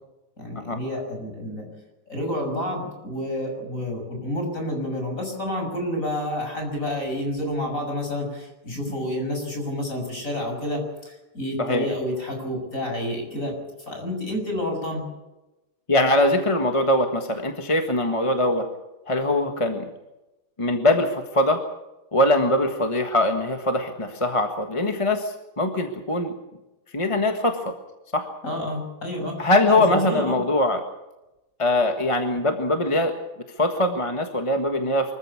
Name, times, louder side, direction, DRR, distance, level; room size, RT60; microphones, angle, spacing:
voice 1, 0.4-1.7 2.1-13.5 13.9-15.0 28.4-30.4, left 1 dB, 35° left, 2 dB, 6.7 m, -29 dB
voice 2, 15.9-18.7 19.1-19.9 20.6-21.6 22.1-26.3 26.9-27.7 28.1-28.3 29.4-30.8 31.6-33.2 33.6-35.1, left 1 dB, 15° left, 5 dB, 1.3 m, -22 dB
24.5 x 14.5 x 8.5 m, 0.99 s
omnidirectional pair, 2.4 m